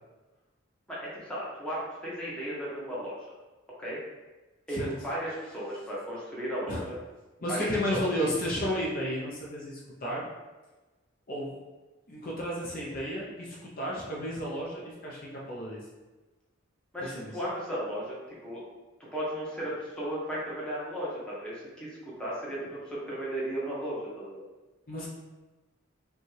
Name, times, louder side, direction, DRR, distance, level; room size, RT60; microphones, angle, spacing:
voice 1, 0.9-3.3 3.8-4.0 4.7-7.0 7.5-7.7 7.9-8.1 16.9-18.6 19.0-24.4, equal, 5° left, -7 dB, 1.0 m, -35 dB
voice 2, 7.4-10.3 11.3-11.6 12.1-15.8 17.0-17.3 24.9-25.1, equal, 45° left, -4 dB, 0.7 m, -32 dB
5.1 x 2.3 x 3.2 m, 1.2 s
head